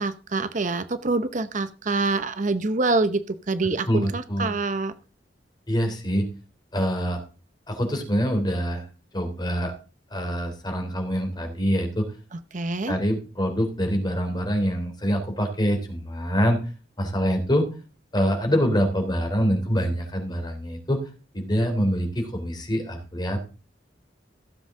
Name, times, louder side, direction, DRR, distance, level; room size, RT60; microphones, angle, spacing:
voice 1, 0.0-4.9 12.3-13.0, right 3 dB, 45° right, 12 dB, 0.8 m, -26 dB
voice 2, 3.9-4.5 5.7-6.3 6.7-7.2 7.7-8.8 9.1-9.7 10.1-12.0 12.9-16.6 17.0-17.7 18.1-21.1 21.3-23.5, equal, 25° left, 4 dB, 3.3 m, -25 dB
16.0 x 7.7 x 3.7 m, 0.34 s
head